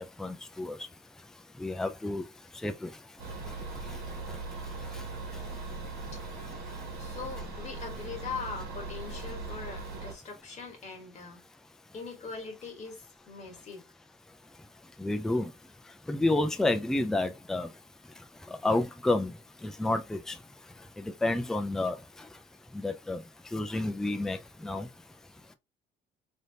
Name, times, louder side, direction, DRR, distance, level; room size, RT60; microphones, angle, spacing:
voice 1, 0.2-0.8 1.6-2.2 2.6-2.9 3.9-4.0 4.9-5.0 15.0-15.5 16.1-17.7 18.5-19.3 19.6-20.4 21.0-22.0 22.7-23.2 23.5-24.9, left 2 dB, 5° left, 0.3 m, -30 dB
sound 1, 3.2-10.1, right 3 dB, 70° right, 1.4 m, -39 dB
voice 2, 7.0-11.4 11.9-13.9, left 5 dB, 45° left, 1.5 m, -41 dB
3.3 x 2.8 x 2.6 m
cardioid pair, 110°, 17 cm